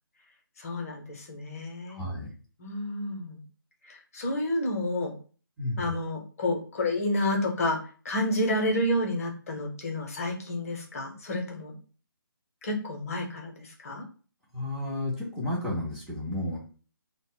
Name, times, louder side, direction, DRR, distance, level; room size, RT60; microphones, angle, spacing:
voice 1, 0.6-2.0 2.6-3.4 3.8-5.1 5.8-11.8 12.6-14.0, left 1 dB, 40° left, 2 dB, 0.7 m, -30 dB
voice 2, 2.0-2.3 5.6-5.9 14.5-16.6, left 1 dB, 5° right, -7 dB, 0.5 m, -32 dB
2.0 x 2.0 x 3.6 m, 0.39 s
figure-of-eight pair, 155°, 12 cm